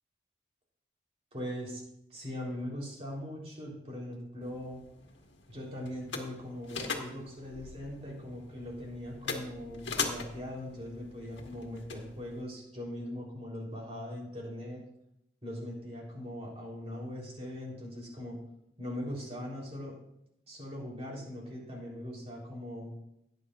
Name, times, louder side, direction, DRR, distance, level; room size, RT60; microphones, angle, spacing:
voice 1, 1.3-1.8 2.1-4.8 5.5-14.8 15.4-18.4 18.8-20.0 20.5-22.9, left 1 dB, 35° right, -2 dB, 3.5 m, -40 dB
sound 1, 4.4-12.4, left 4 dB, 85° left, 1.7 m, -41 dB
17.5 x 9.7 x 2.5 m, 0.80 s
head